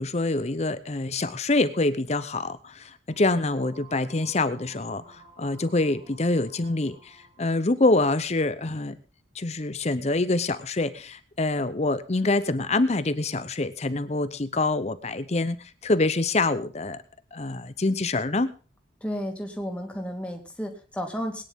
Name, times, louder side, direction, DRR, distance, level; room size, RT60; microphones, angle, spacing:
voice 1, 0.0-7.0 7.4-8.9 9.4-17.0 17.3-18.5, left 2 dB, 35° left, 13 dB, 0.8 m, -25 dB
sound 1, 3.1-7.6, right 2 dB, 60° right, 5.6 m, -53 dB
voice 2, 19.0-21.4, equal, 5° left, 2 dB, 2.2 m, -32 dB
21.0 x 9.8 x 3.7 m, 0.36 s
head